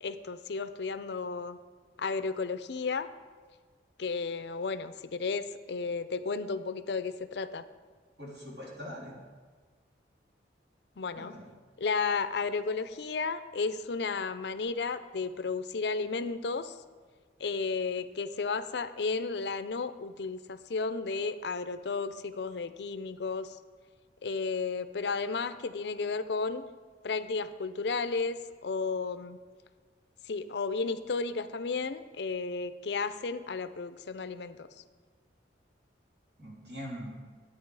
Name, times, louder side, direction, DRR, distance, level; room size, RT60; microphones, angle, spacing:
voice 1, 0.0-1.6 2.0-3.1 4.0-7.6 11.0-11.3 11.8-16.8 17.4-23.6 24.2-26.6 27.0-29.4 30.3-34.7, left 4 dB, 65° left, 12 dB, 0.5 m, -33 dB
voice 2, 8.2-9.2 11.2-11.5 36.4-37.1, equal, 65° right, -4 dB, 3.5 m, -42 dB
11.5 x 9.0 x 4.7 m, 1.5 s
head